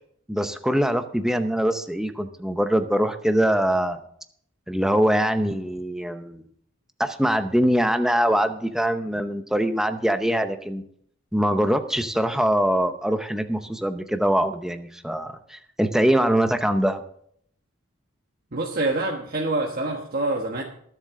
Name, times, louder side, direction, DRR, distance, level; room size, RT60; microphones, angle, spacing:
voice 1, 0.3-4.0 4.7-6.5 7.0-10.8 11.3-17.0, equal, 5° right, 8 dB, 0.7 m, -23 dB
voice 2, 18.5-20.6, right 2 dB, 45° right, 0 dB, 1.3 m, -26 dB
22.0 x 7.5 x 3.8 m, 0.66 s
head